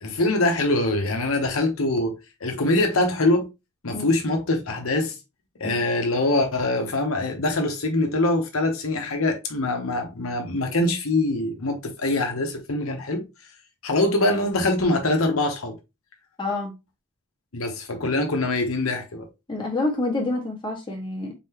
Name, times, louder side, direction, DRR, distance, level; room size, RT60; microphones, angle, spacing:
voice 1, 0.0-3.5 3.8-5.2 5.6-13.2 13.8-15.8 17.5-19.3, left 2 dB, 85° left, 1.1 m, -23 dB
voice 2, 16.4-16.7 19.5-21.3, left 2 dB, 25° left, 1.6 m, -27 dB
4.3 x 3.8 x 2.9 m
head